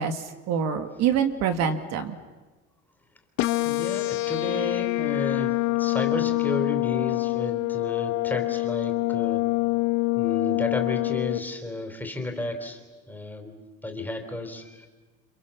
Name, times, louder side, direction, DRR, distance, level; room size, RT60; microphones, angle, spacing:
voice 1, 0.0-2.2, right 7 dB, 60° right, 8 dB, 2.2 m, -26 dB
sound 1, 3.4-11.4, left 21 dB, 75° left, 1.9 m, -25 dB
voice 2, 3.6-9.5 10.2-12.8 13.1-14.9, left 2 dB, 5° left, 4 dB, 3.9 m, -33 dB
30.0 x 26.5 x 7.3 m, 1.3 s
cardioid pair, 140°, 29 cm